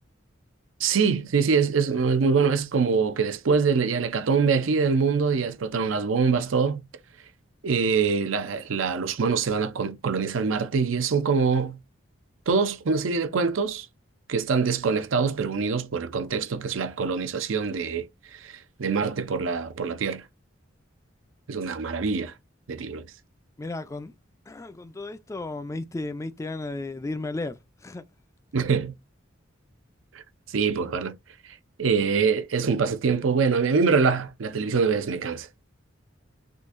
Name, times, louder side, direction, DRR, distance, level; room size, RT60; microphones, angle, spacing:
voice 1, 0.8-6.8 7.6-11.8 12.5-13.9 14.3-18.1 18.3-20.2 21.5-22.3 22.7-23.1 28.5-28.9 30.1-30.2 30.5-31.2 31.8-35.5, right 5 dB, 80° right, 0.6 m, -24 dB
voice 2, 23.6-24.1 24.5-28.0, left 2 dB, 15° left, 0.3 m, -34 dB
3.7 x 2.6 x 2.5 m
head